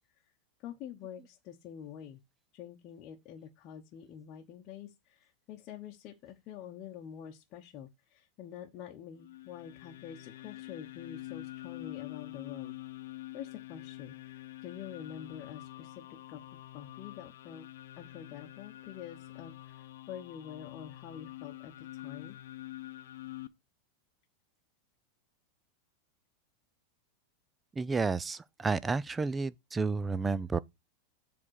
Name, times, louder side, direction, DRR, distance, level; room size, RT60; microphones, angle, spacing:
voice 1, 0.6-2.2 2.5-12.7 13.3-15.9 16.3-16.4 16.7-17.7 18.0-22.4, left 9 dB, 35° left, 0.9 m, -47 dB
sound 1, 9.2-23.5, left 16 dB, 85° left, 0.7 m, -46 dB
voice 2, 27.8-30.6, right 4 dB, 10° right, 0.3 m, -31 dB
7.5 x 3.6 x 6.3 m
supercardioid pair, 160°, 0 cm